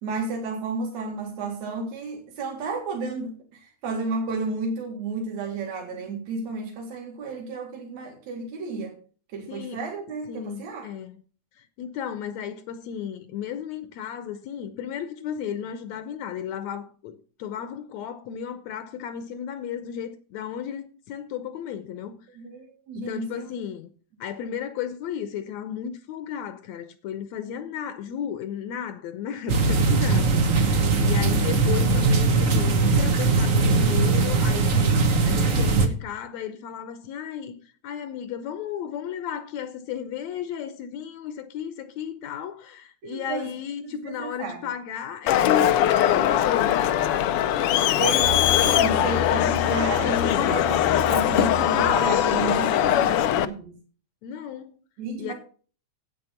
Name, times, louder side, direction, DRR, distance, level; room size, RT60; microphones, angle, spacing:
voice 1, 0.0-9.0 9.3-10.9 22.4-23.5 43.0-43.5 43.8-44.7 48.0-53.7 55.0-55.3, right 3 dB, 65° right, 3.1 m, -32 dB
voice 2, 9.5-9.8 10.3-11.2 11.6-22.2 23.0-23.9 24.2-34.9 35.2-46.8 52.6-53.2 54.2-54.8 55.2-55.3, left 9 dB, 75° left, 1.9 m, -34 dB
sound 1, 29.5-35.9, right 3 dB, 90° right, 0.7 m, -20 dB
Crowd, 45.3-53.5, left 11 dB, 90° left, 1.2 m, -21 dB
9.7 x 8.5 x 5.7 m
omnidirectional pair, 3.4 m